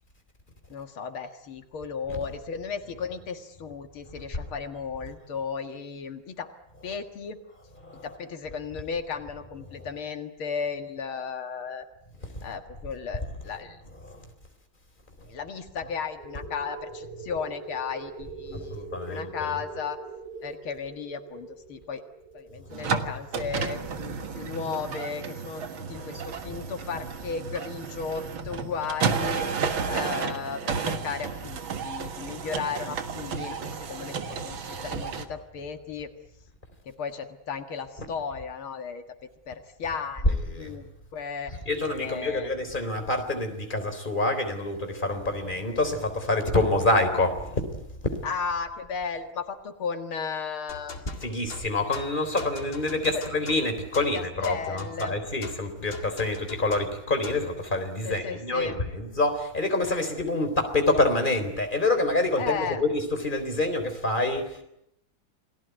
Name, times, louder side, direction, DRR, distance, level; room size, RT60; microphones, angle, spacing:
voice 1, 0.7-6.5 6.8-7.4 8.0-11.9 12.4-13.8 15.2-20.0 20.4-22.0 22.3-25.6 25.9-29.5 29.9-36.1 36.8-40.3 40.5-41.5 42.0-42.5 48.2-51.1 53.1-53.2 54.1-55.2 58.0-58.8 62.4-62.8, left 6 dB, 90° left, 7 dB, 2.6 m, -35 dB
voice 2, 12.2-12.5 14.0-14.3 15.2-15.3 18.5-19.6 25.8-26.1 26.5-26.6 34.7-34.9 40.2-40.8 41.7-48.1 51.2-64.6, left 2 dB, 20° left, 6 dB, 4.0 m, -27 dB
sound 1, 16.2-24.5, right 4 dB, 45° right, 5.7 m, -43 dB
sound 2, 22.7-35.2, right 5 dB, 70° right, 2.4 m, -32 dB
sound 3, 50.7-57.5, left 4 dB, 50° left, 2.7 m, -42 dB
29.0 x 19.5 x 9.3 m, 0.79 s
omnidirectional pair, 2.2 m